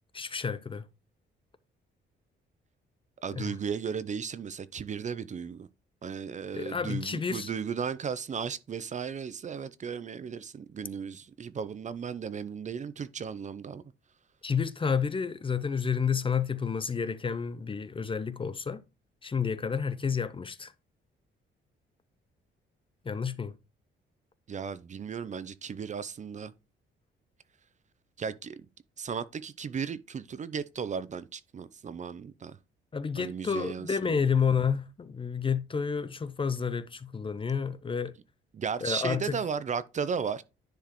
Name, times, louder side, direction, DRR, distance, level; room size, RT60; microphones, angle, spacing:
voice 1, 0.1-0.8 3.3-3.5 6.5-7.5 14.4-18.8 19.2-20.7 23.0-23.5 32.9-38.1 38.8-39.4, left 6 dB, 25° left, 0.6 m, -30 dB
voice 2, 3.2-5.7 6.0-13.8 24.5-26.5 28.2-28.7 29.0-32.6 33.2-34.2 38.5-40.4, right 6 dB, 40° right, 0.5 m, -35 dB
10.0 x 4.7 x 3.0 m
cardioid pair, 90°, 20 cm